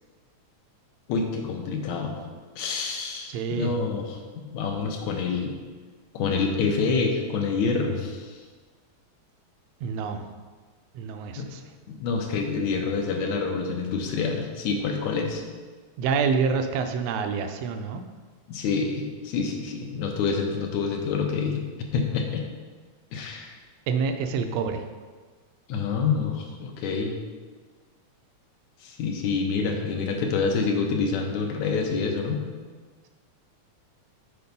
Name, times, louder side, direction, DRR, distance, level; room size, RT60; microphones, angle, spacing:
voice 1, 1.1-2.2 2.6-5.6 6.1-8.4 11.4-11.5 11.9-15.4 18.5-21.6 21.9-22.4 23.1-23.5 25.7-27.2 28.8-32.4, left 5 dB, 75° left, 3 dB, 2.2 m, -27 dB
voice 2, 3.3-3.7 9.8-10.2 10.9-11.6 16.0-18.0 23.9-24.8, right 5 dB, 80° right, 7 dB, 1.5 m, -27 dB
6.9 x 4.6 x 5.3 m, 1.5 s
omnidirectional pair, 3.4 m